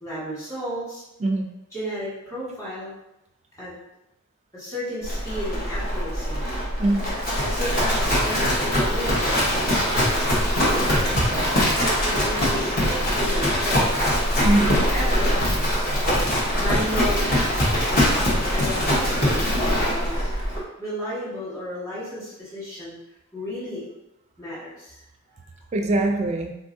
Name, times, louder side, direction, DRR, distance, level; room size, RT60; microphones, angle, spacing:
voice 1, 0.0-1.0 1.7-2.9 3.6-3.7 4.5-6.4 7.4-9.4 10.6-11.1 11.8-14.3 14.6-15.7 16.5-17.4 18.5-20.2 20.8-23.0 23.3-23.9 24.4-25.0, equal, 15° left, -10 dB, 1.3 m, -33 dB
Livestock farm animals working animals, 5.0-20.6, equal, 45° left, 0.9 m, -22 dB
voice 2, 6.8-7.1 11.1-11.7 14.4-14.7 25.7-26.5, right 2 dB, 30° right, 4 dB, 0.3 m, -23 dB
3.9 x 2.6 x 2.5 m, 0.92 s
head